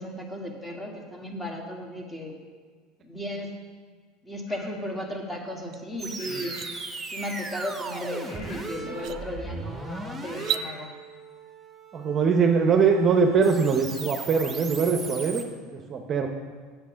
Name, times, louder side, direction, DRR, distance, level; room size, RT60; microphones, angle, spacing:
voice 1, 0.0-2.4 3.0-3.5 4.2-6.6 7.1-10.9, left 1 dB, 10° left, 1 dB, 1.7 m, -35 dB
sound 1, 4.5-4.7 6.2-6.8 7.2-7.5 8.2-8.8 10.2-10.8, left 2 dB, 75° left, 3.3 m, -45 dB
sound 2, 5.7-5.8 6.2-6.7 8.3-8.4 8.9-9.2 10.3-10.7, right 11 dB, 50° right, 0.4 m, -32 dB
sound 3, 6.0-15.4, right 3 dB, 15° right, 1.0 m, -38 dB
voice 2, 11.9-15.4 15.7-16.3, right 5 dB, 35° right, 4 dB, 0.7 m, -22 dB
8.2 x 7.0 x 6.3 m, 1.6 s
supercardioid pair, 115°, 0 cm